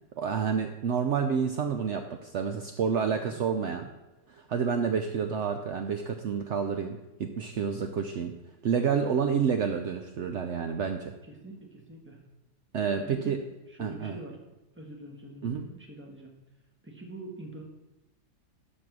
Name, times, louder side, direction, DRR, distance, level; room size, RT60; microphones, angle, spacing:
voice 1, 0.2-3.9 4.3-8.3 8.6-11.1 12.7-13.4 13.8-14.2 15.4-15.6, right 6 dB, 70° right, 6 dB, 0.6 m, -29 dB
voice 2, 11.3-12.2 13.0-13.4 13.7-14.4 14.8-16.3 16.8-17.6, right 1 dB, 10° right, 1 dB, 1.3 m, -44 dB
12.0 x 4.3 x 6.1 m, 1.0 s
omnidirectional pair, 1.9 m